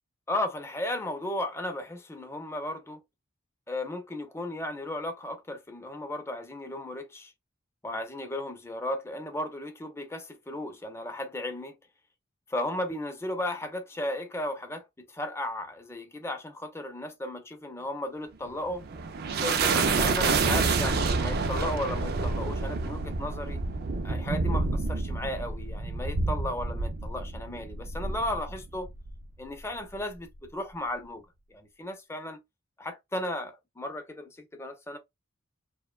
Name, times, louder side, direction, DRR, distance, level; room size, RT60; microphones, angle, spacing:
voice 1, 0.3-3.0 3.7-7.3 7.8-11.8 12.5-18.8 19.4-23.6 24.0-28.9 29.4-31.3 31.5-32.4 32.8-35.0, left 1 dB, 15° left, 0.5 m, -35 dB
sound 1, 18.5-29.2, right 4 dB, 50° right, 0.4 m, -28 dB
2.7 x 2.1 x 2.3 m
head